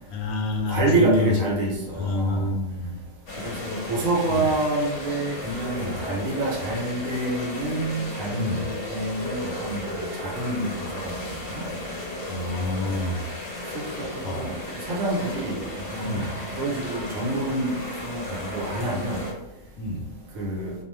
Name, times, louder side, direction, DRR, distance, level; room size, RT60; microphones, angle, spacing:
voice 1, 0.1-1.3 2.0-2.9 4.3-4.4 5.7-6.0 8.3-8.6 12.3-13.2 14.2-14.5 16.0-16.3 19.8-20.0, left 2 dB, 85° left, 3 dB, 1.0 m, -27 dB
voice 2, 0.7-2.5 3.4-11.7 12.7-12.8 13.7-15.6 15.9-16.3 16.5-17.8 18.0-19.2 20.3-20.8, right 2 dB, 70° right, -1 dB, 1.1 m, -27 dB
sound 1, 3.3-19.3, left 1 dB, 55° left, 0.8 m, -35 dB
2.5 x 2.4 x 3.1 m, 0.90 s
omnidirectional pair, 1.5 m